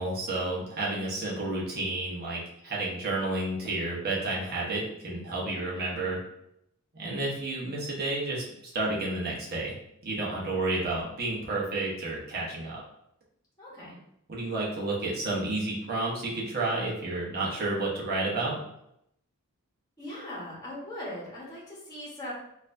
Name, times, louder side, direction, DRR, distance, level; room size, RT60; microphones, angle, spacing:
voice 1, 0.0-6.2 6.9-9.7 10.0-12.8 14.3-18.6, right 2 dB, 45° right, -4 dB, 1.1 m, -31 dB
voice 2, 13.6-14.0 20.0-22.3, left 1 dB, 15° left, -6 dB, 1.2 m, -40 dB
4.2 x 2.7 x 2.6 m, 0.77 s
head